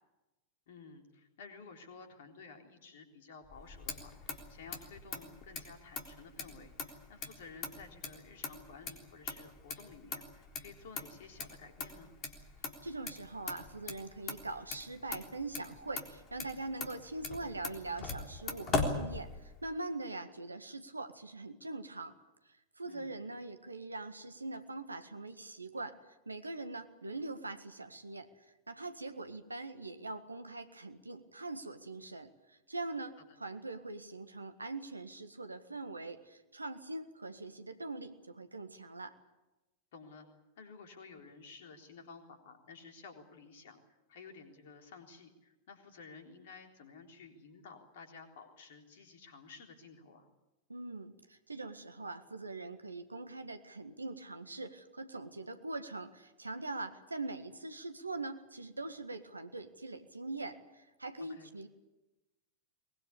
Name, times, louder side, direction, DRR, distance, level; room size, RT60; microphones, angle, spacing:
voice 1, 0.7-12.1 22.9-23.2 39.9-40.3 40.6-50.3 61.2-61.5, left 4 dB, 55° left, 5 dB, 3.8 m, -53 dB
Motor vehicle (road), 3.5-19.7, left 4 dB, 30° left, 3.7 m, -41 dB
voice 2, 12.8-22.1 22.4-39.1 50.7-61.7, right 2 dB, 80° right, 9 dB, 1.7 m, -43 dB
23.0 x 20.5 x 8.5 m, 1.0 s
figure-of-eight pair, 90°, 0 cm